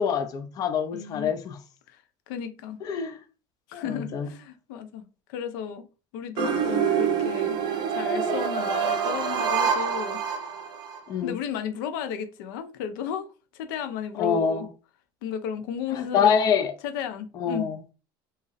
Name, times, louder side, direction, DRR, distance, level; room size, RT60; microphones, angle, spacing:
voice 1, 0.0-1.6 2.8-3.2 3.7-4.3 11.1-11.4 14.2-14.7 15.9-16.7 17.4-17.8, left 7 dB, 35° left, 0.4 m, -25 dB
voice 2, 0.9-1.3 1.9-2.0 2.3-2.8 3.7-5.9 6.1-7.6 7.9-10.2 11.2-13.3 13.5-14.7 15.2-16.3 16.8-17.7, left 8 dB, 90° left, 0.5 m, -33 dB
sound 1, 6.4-11.0, right 7 dB, 45° right, 0.5 m, -26 dB
2.6 x 2.0 x 3.9 m
cardioid pair, 140°, 11 cm